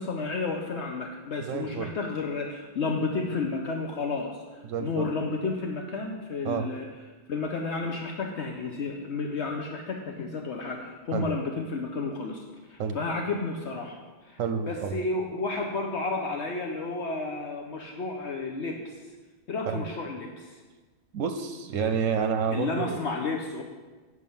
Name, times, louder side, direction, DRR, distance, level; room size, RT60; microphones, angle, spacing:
voice 1, 0.0-4.4 4.8-6.9 7.3-12.4 12.7-14.4 14.7-19.0 19.5-20.6 22.5-23.6, left 3 dB, 60° left, 1 dB, 1.0 m, -31 dB
voice 2, 1.4-1.9 4.6-5.1 6.4-6.7 11.1-11.3 12.8-13.0 14.4-15.0 19.7-19.8 21.1-23.0, right 6 dB, 80° right, 7 dB, 1.0 m, -29 dB
8.8 x 6.4 x 5.4 m, 1.3 s
omnidirectional pair, 1.3 m